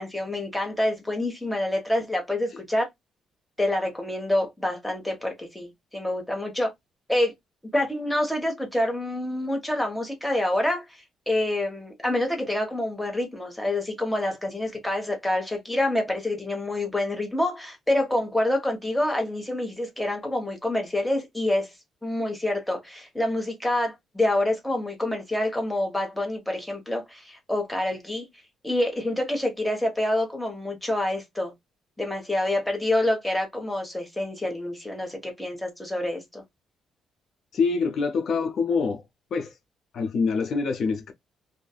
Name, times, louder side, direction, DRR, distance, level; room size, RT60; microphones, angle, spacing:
voice 1, 0.0-2.9 3.6-6.7 7.1-7.3 7.7-10.8 11.3-21.7 22.0-28.3 28.6-31.5 32.0-36.4, left 1 dB, 5° left, 1.1 m, -27 dB
voice 2, 37.5-39.0 39.3-39.6 39.9-41.1, left 4 dB, 60° left, 0.5 m, -25 dB
2.6 x 2.4 x 2.3 m
cardioid pair, 90°, 0 cm